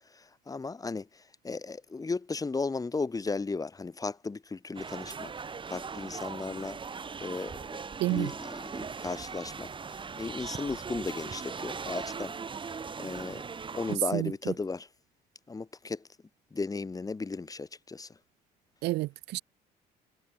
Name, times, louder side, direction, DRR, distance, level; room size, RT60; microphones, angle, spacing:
voice 1, 0.5-1.1 1.4-5.3 5.7-6.8 7.2-7.6 8.1-9.7 10.2-12.3 13.0-13.5 13.7-14.9 15.5-16.0 16.5-18.1, left 4 dB, 20° left, 3.3 m, -35 dB
sound 1, 4.8-14.0, right 5 dB, 30° right, 2.8 m, -39 dB
voice 2, 8.0-8.3 14.1-14.5 18.8-19.4, right 19 dB, 85° right, 1.3 m, -30 dB
cardioid pair, 110°, 17 cm